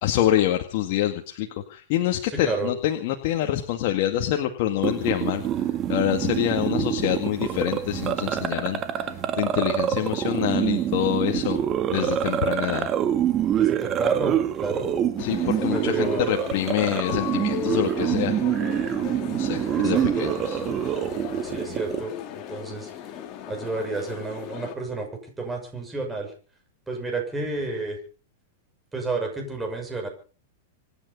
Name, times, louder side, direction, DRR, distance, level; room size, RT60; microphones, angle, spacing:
voice 1, 0.0-11.6 11.9-12.9 15.2-18.4 19.3-20.6, left 12 dB, 50° left, 4 dB, 2.0 m, -26 dB
voice 2, 2.3-2.7 13.5-15.0 15.6-16.2 19.8-20.3 21.4-22.9 23.5-25.1 25.4-26.3 26.9-28.0 28.9-30.1, right 3 dB, 10° right, 2 dB, 6.3 m, -30 dB
sound 1, 4.8-22.0, right 10 dB, 30° right, 1.8 m, -26 dB
sound 2, 15.2-24.7, left 10 dB, 35° left, 3.4 m, -36 dB
26.5 x 9.8 x 5.5 m, 0.38 s
supercardioid pair, 145°, 0 cm